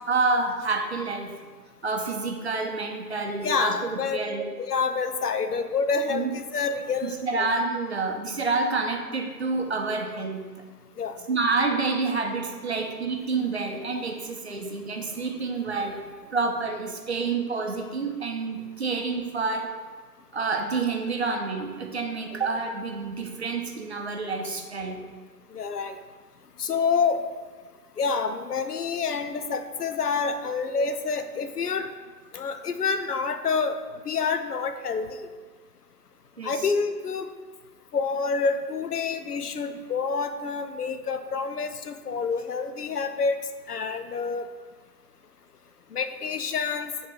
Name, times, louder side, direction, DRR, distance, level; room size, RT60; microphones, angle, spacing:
voice 1, 0.1-1.3 1.8-4.5 6.1-6.3 7.0-10.5 11.3-16.0 16.3-19.7 20.3-25.0 30.8-30.9 36.4-36.6, right 4 dB, 40° right, 3 dB, 0.6 m, -28 dB
voice 2, 3.4-4.2 4.6-7.5 11.0-11.2 25.5-26.0 26.6-27.2 28.0-31.9 32.3-33.8 34.1-35.3 36.4-37.3 37.9-43.4 43.7-44.5 45.9-46.9, left 5 dB, 70° left, 8 dB, 0.6 m, -27 dB
7.5 x 3.8 x 3.8 m, 1.4 s
figure-of-eight pair, 140°, 49 cm